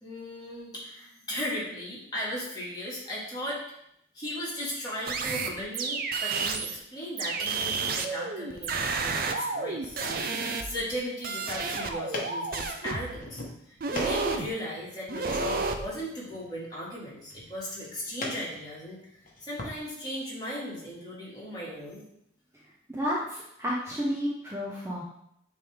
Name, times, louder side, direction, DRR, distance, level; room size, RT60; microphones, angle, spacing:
voice 1, 0.0-3.6 4.1-22.0, equal, 20° left, -7 dB, 2.2 m, -37 dB
sound 1, 5.1-6.8 7.2-10.9 11.2-13.2 13.8-14.5 15.1-15.8, right 4 dB, 50° right, 0.5 m, -31 dB
sound 2, 11.2-19.8, left 2 dB, 45° left, 1.2 m, -43 dB
voice 2, 22.9-25.0, equal, 15° right, -5 dB, 0.8 m, -31 dB
8.8 x 3.4 x 3.6 m, 0.75 s
head